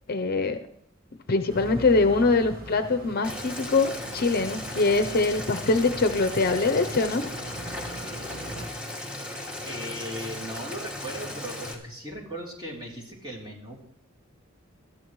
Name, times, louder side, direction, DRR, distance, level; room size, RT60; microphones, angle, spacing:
voice 1, 0.1-0.6 1.3-7.3, left 3 dB, 50° left, 8 dB, 0.7 m, -23 dB
sound 1, 1.5-8.7, equal, 45° right, 1.6 m, -41 dB
Boiling, 3.2-11.7, left 1 dB, 5° right, 2.2 m, -37 dB
voice 2, 9.6-13.8, equal, 25° right, -2 dB, 3.4 m, -38 dB
20.0 x 13.0 x 3.1 m, 0.68 s
head